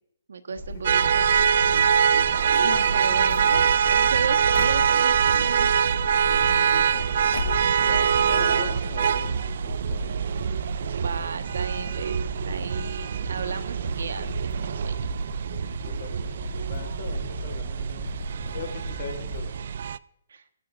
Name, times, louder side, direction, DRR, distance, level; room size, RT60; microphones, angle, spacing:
voice 1, 0.3-1.3 2.3-3.6 3.9-5.7 10.9-15.0 15.6-15.9 20.3-20.4, right 5 dB, 75° right, 9 dB, 1.3 m, -35 dB
sound 1, 0.6-19.4, right 1 dB, 25° right, 6.2 m, -36 dB
sound 2, 0.8-20.0, right 7 dB, 50° right, 0.4 m, -24 dB
voice 2, 0.9-1.7 6.5-7.1 7.8-10.1 15.8-18.1 18.5-19.7, left 6 dB, 45° left, 5 dB, 3.6 m, -40 dB
sound 3, 2.5-5.4 6.3-7.1 7.3-7.8 8.1-8.9 9.1-9.2 9.4-9.5 10.2-10.3 10.6-10.8, left 5 dB, 75° left, 1.6 m, -36 dB
17.5 x 14.0 x 2.6 m, 0.78 s
hypercardioid pair, 165°, 0 cm